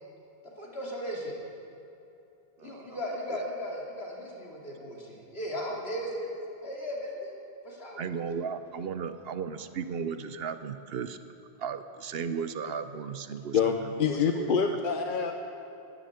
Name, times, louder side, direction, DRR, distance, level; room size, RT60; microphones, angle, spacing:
voice 1, 0.6-1.4 2.6-6.3 6.6-7.3 7.6-8.1, equal, 70° left, -3 dB, 3.0 m, -36 dB
voice 2, 8.0-11.2 11.6-13.6 14.3-14.5, right 6 dB, 70° right, 11 dB, 0.9 m, -35 dB
voice 3, 13.5-15.3, left 6 dB, 55° left, 5 dB, 0.8 m, -26 dB
12.5 x 11.0 x 8.8 m, 2.8 s
omnidirectional pair, 1.1 m